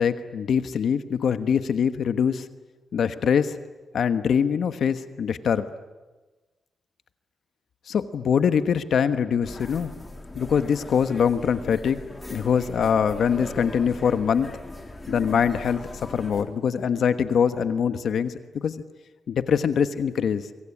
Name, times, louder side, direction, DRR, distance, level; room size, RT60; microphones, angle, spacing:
voice 1, 0.0-2.5 2.9-3.6 3.9-5.7 7.9-10.0 10.3-12.0 12.3-14.6 15.1-18.3 18.6-18.7 19.3-20.4, left 7 dB, 70° left, 10 dB, 1.2 m, -23 dB
sound 1, 9.4-16.4, left 2 dB, 20° left, 3.3 m, -39 dB
25.0 x 24.0 x 9.8 m, 1.2 s
wide cardioid pair, 120°, 0 cm